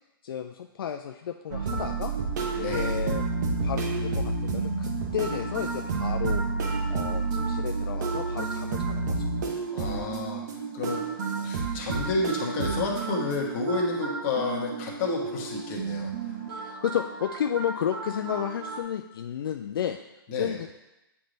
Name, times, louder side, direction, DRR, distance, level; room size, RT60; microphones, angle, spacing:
voice 1, 0.2-2.1 2.6-3.2 3.6-6.4 6.9-9.3 16.5-20.0 20.3-20.7, left 9 dB, 70° left, 5 dB, 0.4 m, -32 dB
sound 1, 1.5-18.8, right 4 dB, 50° right, 1.0 m, -30 dB
voice 2, 2.5-2.9 9.7-11.0 11.4-16.3 20.3-20.6, left 3 dB, 35° left, -1 dB, 1.3 m, -30 dB
8.5 x 3.3 x 3.9 m, 0.95 s
hypercardioid pair, 150°, 12 cm